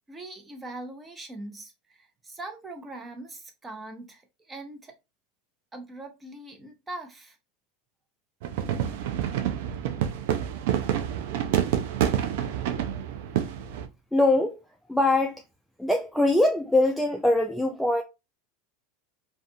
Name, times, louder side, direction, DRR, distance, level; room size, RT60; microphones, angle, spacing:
voice 1, 0.1-4.9 5.7-7.4, right 2 dB, 15° right, 0.8 m, -41 dB
sound 1, 8.4-13.9, right 10 dB, 70° right, 0.4 m, -28 dB
voice 2, 14.1-14.6 14.9-15.4 15.8-18.0, left 2 dB, ahead, 0.3 m, -22 dB
2.5 x 2.3 x 2.6 m
hypercardioid pair, 105°, 0 cm